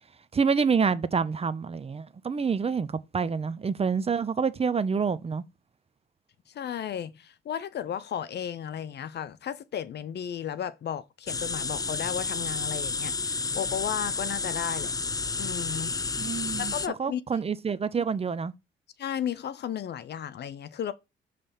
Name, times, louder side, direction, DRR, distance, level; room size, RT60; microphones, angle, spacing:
voice 1, 0.3-5.4 16.2-16.7 17.0-18.5, right 5 dB, 30° right, 0.7 m, -27 dB
voice 2, 6.5-14.9 15.4-16.0 16.6-17.4 19.0-20.9, left 9 dB, 60° left, 0.7 m, -34 dB
sound 1, 11.3-16.9, left 4 dB, 20° left, 0.4 m, -31 dB
6.8 x 3.4 x 5.7 m
cardioid pair, 90°, 20 cm